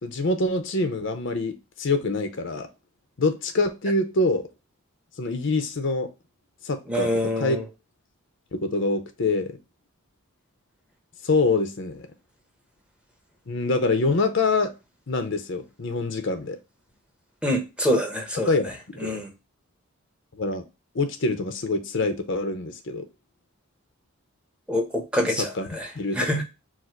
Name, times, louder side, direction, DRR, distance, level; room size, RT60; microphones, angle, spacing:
voice 1, 0.0-2.7 3.2-4.4 5.2-6.1 6.6-7.1 7.4-7.6 8.5-9.6 11.2-12.1 13.5-14.7 15.1-16.6 18.5-18.7 19.0-19.2 20.3-20.6 20.9-23.1 25.2-25.7 25.9-26.3, left 3 dB, 60° left, 0.7 m, -25 dB
voice 2, 6.9-7.7 17.4-18.5 19.0-19.3 24.7-26.4, left 1 dB, 5° right, 0.8 m, -26 dB
4.7 x 2.1 x 4.4 m
head